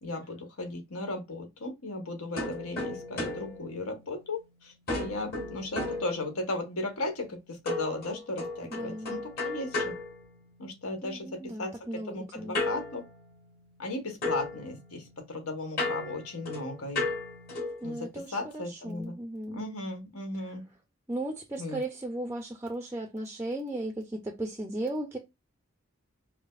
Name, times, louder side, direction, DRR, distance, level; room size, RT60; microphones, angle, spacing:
voice 1, 0.0-9.9 10.6-11.7 12.1-13.0 13.8-17.1 17.8-19.2 19.5-20.6 21.6-21.8, left 2 dB, 90° left, 1.2 m, -36 dB
sound 1, 2.4-4.5 4.9-6.7 7.7-10.9 12.5-13.9 14.2-17.9, left 2 dB, 45° left, 1.7 m, -35 dB
voice 2, 8.7-9.2 11.0-12.6 17.8-19.6 20.4-20.5 21.1-25.2, right 1 dB, 10° right, 0.4 m, -36 dB
4.8 x 2.0 x 2.4 m
head